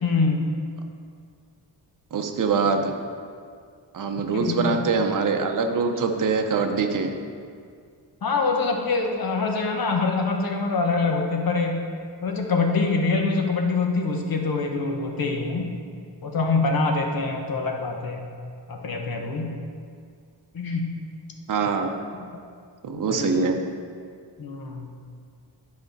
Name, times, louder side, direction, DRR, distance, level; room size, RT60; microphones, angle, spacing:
voice 1, 0.0-0.4 4.3-4.8 8.2-11.8 12.2-15.6 16.2-18.3 18.7-19.5 20.5-21.0 23.1-23.3 24.4-24.9, left 3 dB, 55° left, 2 dB, 1.0 m, -25 dB
voice 2, 2.1-2.9 3.9-7.1 21.5-22.0 22.8-23.6, right 4 dB, 45° right, 4 dB, 0.7 m, -24 dB
10.5 x 5.1 x 4.0 m, 2.2 s
wide cardioid pair, 135°, 43 cm